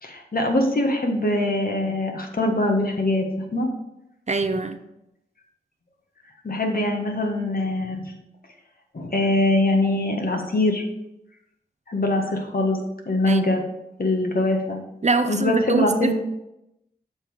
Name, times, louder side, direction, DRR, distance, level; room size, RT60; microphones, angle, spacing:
voice 1, 0.0-3.3 3.5-3.7 6.4-8.0 8.9-10.8 11.9-12.8 13.0-13.6 14.0-14.8 15.3-16.1, left 2 dB, 55° left, 2 dB, 1.4 m, -22 dB
voice 2, 4.3-4.8 13.3-13.4 15.0-16.1, right 3 dB, 40° right, 10 dB, 0.6 m, -23 dB
7.1 x 3.6 x 6.4 m, 0.88 s
cardioid pair, 40°, 18 cm